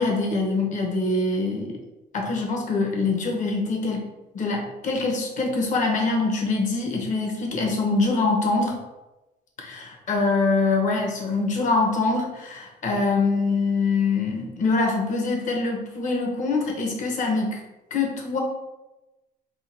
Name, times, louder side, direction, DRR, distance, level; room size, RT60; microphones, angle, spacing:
voice 1, 0.0-1.8 2.1-4.1 4.3-8.8 9.6-17.6 17.9-18.4, left 3 dB, 45° left, 1 dB, 1.1 m, -24 dB
3.6 x 2.3 x 4.5 m, 1.0 s
cardioid pair, 110°, 17 cm